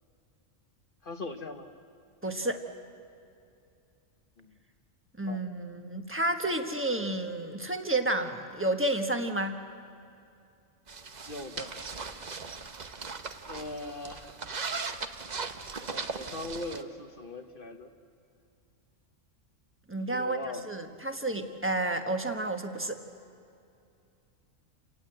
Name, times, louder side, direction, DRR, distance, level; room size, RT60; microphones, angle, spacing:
voice 1, 1.0-1.7 4.4-4.5 5.2-5.4 11.3-11.7 13.4-14.3 15.8-17.9 20.1-20.6, left 2 dB, 45° left, 6 dB, 1.3 m, -40 dB
voice 2, 2.2-2.6 5.2-9.6 19.9-20.4 20.7-23.0, right 2 dB, 10° right, 5 dB, 1.3 m, -30 dB
sound 1, 10.9-16.8, right 4 dB, 40° right, 1.0 m, -38 dB
29.0 x 18.5 x 7.9 m, 2.6 s
omnidirectional pair, 1.3 m